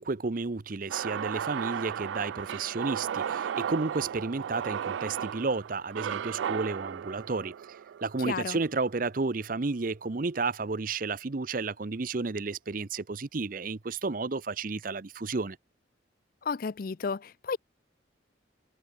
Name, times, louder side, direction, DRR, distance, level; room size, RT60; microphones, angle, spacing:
voice 1, 0.0-15.6, right 3 dB, 45° right, 0.7 m, -32 dB
sound 1, 0.9-9.1, right 8 dB, 70° right, 0.3 m, -35 dB
voice 2, 8.3-8.6 16.4-17.6, left 5 dB, 50° left, 0.4 m, -32 dB
head